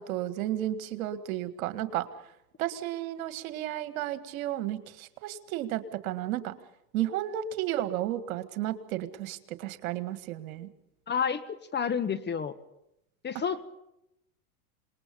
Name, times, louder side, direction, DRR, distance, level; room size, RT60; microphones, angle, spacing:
voice 1, 0.0-2.1 2.6-6.5 6.9-10.7, right 13 dB, 70° right, 11 dB, 1.9 m, -33 dB
voice 2, 11.1-12.5 13.2-13.7, left 7 dB, 25° left, 11 dB, 1.5 m, -30 dB
27.0 x 20.5 x 5.3 m, 0.84 s
hypercardioid pair, 100°, 43 cm